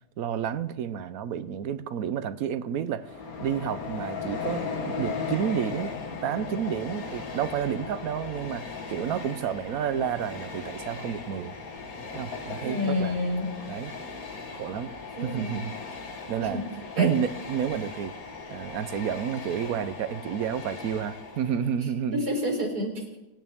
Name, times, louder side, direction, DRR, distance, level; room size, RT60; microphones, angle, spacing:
voice 1, 0.2-3.1 3.4-5.9 6.2-11.6 12.1-13.2 13.7-13.9 14.5-14.9 15.2-15.7 16.3-16.6 17.0-18.1 18.5-22.3, right 8 dB, 70° right, 13 dB, 1.2 m, -30 dB
Train, 3.0-21.9, left 4 dB, 65° left, 1.9 m, -37 dB
voice 2, 12.6-13.5 15.2-15.5 16.4-16.6 17.0-17.1 22.1-23.2, left 1 dB, 90° right, 1 dB, 4.3 m, -28 dB
24.0 x 9.7 x 3.6 m, 1.1 s
omnidirectional pair, 1.7 m